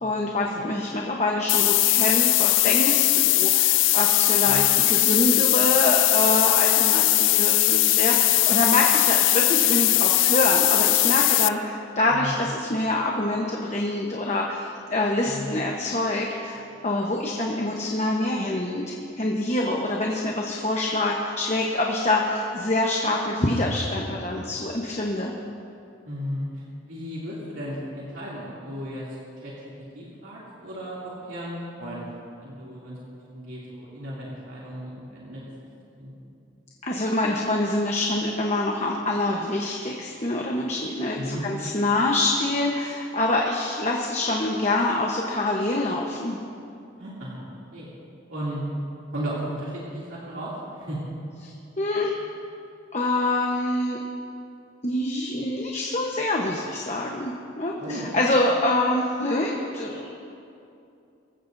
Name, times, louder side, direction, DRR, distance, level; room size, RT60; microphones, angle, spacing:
voice 1, 0.0-25.3 36.8-46.4 51.4-52.1 52.9-54.0 54.8-60.2, left 2 dB, 35° left, -1 dB, 1.1 m, -25 dB
sound 1, 1.5-11.5, left 17 dB, 75° left, 0.4 m, -20 dB
voice 2, 12.1-12.4 15.2-15.6 26.0-29.0 29.4-29.5 29.9-32.1 32.4-33.0 33.3-35.4 36.0-36.1 41.1-41.4 47.0-47.9 48.3-48.6 49.1-51.0 57.8-58.0, equal, 80° right, -7 dB, 2.8 m, -35 dB
24.5 x 15.5 x 2.7 m, 2.6 s
head